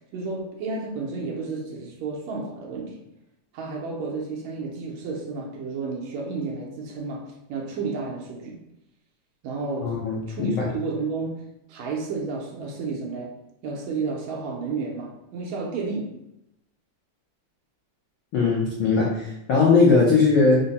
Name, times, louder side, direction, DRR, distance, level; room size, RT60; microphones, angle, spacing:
voice 1, 0.1-3.0 3.5-8.6 9.4-10.0 10.3-11.4 11.7-13.4 13.6-16.1, right 4 dB, 75° right, -1 dB, 1.9 m, -31 dB
voice 2, 9.8-10.7 18.3-20.6, left 4 dB, 85° left, -4 dB, 1.1 m, -19 dB
5.1 x 2.1 x 4.1 m, 0.84 s
omnidirectional pair, 3.4 m